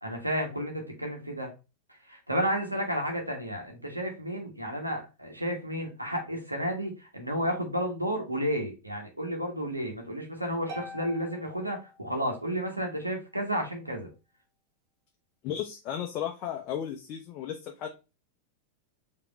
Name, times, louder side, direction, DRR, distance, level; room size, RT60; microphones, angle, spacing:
voice 1, 0.0-1.5 2.1-14.1, equal, 85° right, 2 dB, 1.2 m, -32 dB
Harp, 10.7-12.6, left 1 dB, 35° right, 1.3 m, -45 dB
voice 2, 15.4-17.9, left 9 dB, 40° left, 3 dB, 0.6 m, -34 dB
4.8 x 3.0 x 3.1 m, 0.29 s
figure-of-eight pair, 90°, 0 cm